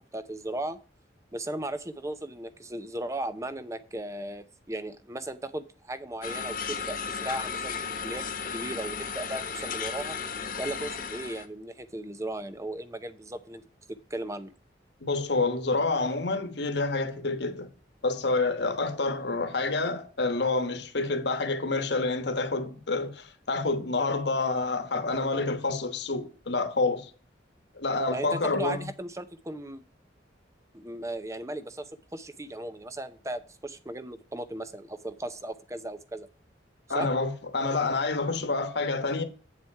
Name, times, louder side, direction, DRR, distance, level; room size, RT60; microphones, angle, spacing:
voice 1, 0.1-0.8 1.3-8.3 8.5-10.2 10.6-13.6 13.9-14.5 28.1-29.8 30.7-36.3 36.9-37.1, right 1 dB, 15° right, 0.6 m, -36 dB
sound 1, 6.2-11.5, left 6 dB, 50° left, 1.1 m, -34 dB
voice 2, 15.0-17.7 18.0-27.1 27.8-28.9 36.9-39.2, left 3 dB, 65° left, 1.2 m, -28 dB
8.0 x 7.4 x 4.7 m
head